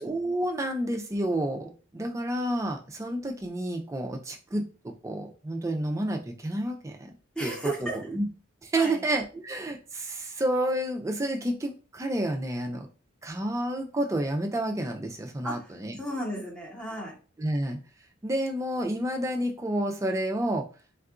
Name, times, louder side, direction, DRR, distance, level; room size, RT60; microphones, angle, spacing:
voice 1, 0.0-7.1 7.4-7.5 7.8-8.3 8.6-12.9 13.2-16.0 17.4-17.8 18.2-20.7, right 1 dB, 15° right, 4 dB, 0.3 m, -30 dB
voice 2, 7.3-8.0 8.8-9.0 15.4-17.2, right 1 dB, 5° left, -3 dB, 0.8 m, -34 dB
3.6 x 2.3 x 2.4 m, 0.36 s
head